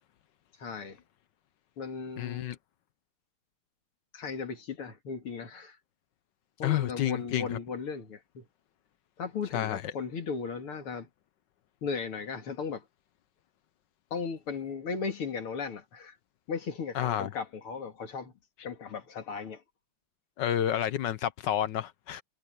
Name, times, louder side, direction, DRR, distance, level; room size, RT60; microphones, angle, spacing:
voice 1, 0.6-1.0 1.8-2.5 4.1-5.8 6.6-8.5 9.2-11.1 11.8-12.9 14.1-16.2 16.5-18.3 18.6-19.6, left 5 dB, 80° left, 3.1 m, -36 dB
voice 2, 2.2-2.6 6.6-7.6 9.5-9.8 16.9-17.3 20.4-22.2, left 11 dB, 65° left, 1.2 m, -30 dB
omnidirectional pair, 2.4 m